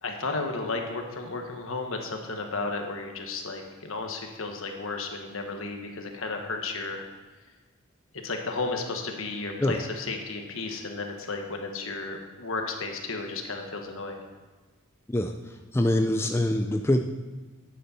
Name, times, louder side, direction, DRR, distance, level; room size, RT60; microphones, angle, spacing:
voice 1, 0.0-7.0 8.2-14.2, left 3 dB, 70° left, 3 dB, 1.4 m, -33 dB
voice 2, 15.7-17.0, left 1 dB, 10° left, 4 dB, 0.4 m, -24 dB
11.0 x 8.6 x 4.3 m, 1.3 s
head